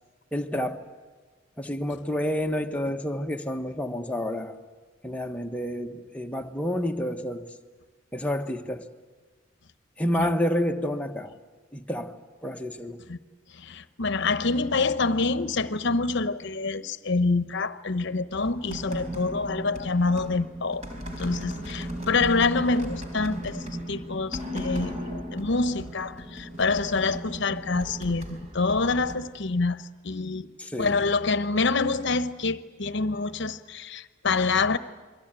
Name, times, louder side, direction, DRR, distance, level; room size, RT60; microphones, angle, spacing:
voice 1, 0.3-0.8 1.6-4.6 5.0-7.6 8.1-8.9 10.0-11.3 11.7-13.1 30.6-31.0, left 1 dB, 5° left, 1.3 m, -29 dB
voice 2, 13.5-20.8 21.2-25.0 25.3-30.5 30.8-34.8, left 3 dB, 60° left, 1.0 m, -26 dB
sound 1, 18.3-29.2, equal, 35° right, 4.4 m, -37 dB
29.0 x 22.5 x 9.0 m
head